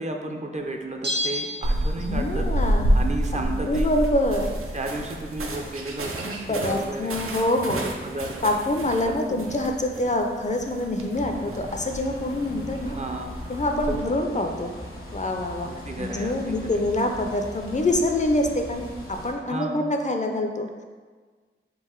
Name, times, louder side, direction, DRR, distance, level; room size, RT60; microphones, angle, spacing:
voice 1, 0.0-2.5 2.9-3.9 4.7-7.2 7.7-8.6 9.0-9.4 12.8-13.4 13.9-14.0 15.6-16.8 19.5-19.9, right 2 dB, 35° right, 3 dB, 0.4 m, -33 dB
Bell, 1.0-2.4 2.7-2.8, left 1 dB, 55° right, 1.0 m, -31 dB
sound 1, 1.6-14.0, right 1 dB, 90° right, 0.5 m, -29 dB
voice 2, 2.0-3.0 3.3-4.5 6.5-7.9 8.4-13.0 13.5-14.7 15.1-15.7 16.0-20.7, left 1 dB, 35° left, 3 dB, 0.4 m, -25 dB
sound 2, 11.1-19.3, left 1 dB, 80° left, 0.8 m, -39 dB
3.8 x 2.5 x 4.3 m, 1.5 s
wide cardioid pair, 55°, 21 cm